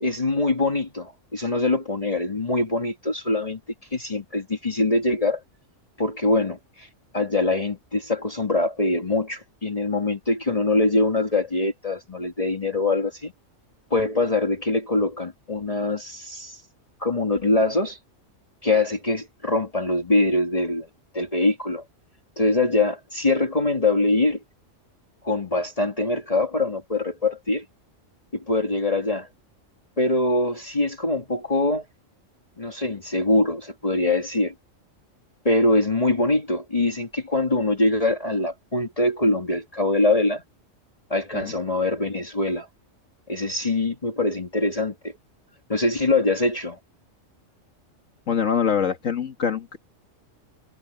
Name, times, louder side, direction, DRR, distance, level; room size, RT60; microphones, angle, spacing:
voice 1, 0.0-3.6 3.9-5.4 6.0-6.9 7.1-13.3 13.9-16.6 17.0-18.0 18.6-20.9 21.1-21.8 22.4-24.4 25.2-27.6 28.3-29.3 30.0-31.9 32.6-34.5 35.5-40.4 41.1-42.7 43.3-44.9 45.7-46.8, left 2 dB, 30° left, 1.8 m, -23 dB
voice 2, 48.3-49.8, left 7 dB, 75° left, 2.1 m, -24 dB
omnidirectional pair, 1.3 m